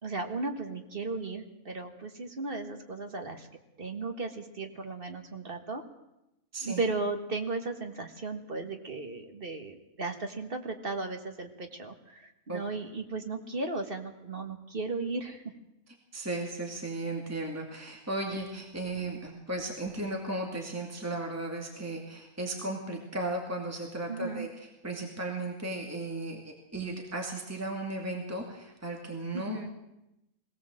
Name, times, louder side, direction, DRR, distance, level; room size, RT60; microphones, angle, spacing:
voice 1, 0.0-3.5 3.8-5.8 6.6-15.4 24.1-24.5 29.3-29.7, right 3 dB, 40° right, 5 dB, 1.9 m, -35 dB
voice 2, 16.1-24.5 24.8-29.6, right 2 dB, 10° right, 1 dB, 2.3 m, -35 dB
22.0 x 17.0 x 7.7 m, 0.89 s
omnidirectional pair, 1.5 m